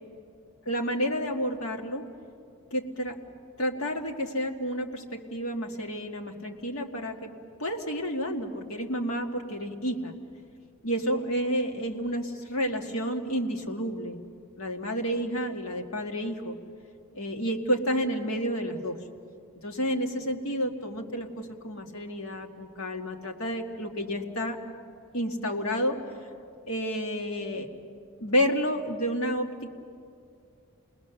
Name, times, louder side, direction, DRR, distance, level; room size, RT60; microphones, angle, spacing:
voice 1, 0.7-2.0 2.7-3.2 3.6-7.3 7.6-10.1 10.8-14.2 14.6-16.6 17.1-19.0 19.6-24.6 25.1-26.0 26.7-27.7 28.2-29.7, equal, 65° left, 2 dB, 1.8 m, -30 dB
28.5 x 20.0 x 7.0 m, 2.4 s
head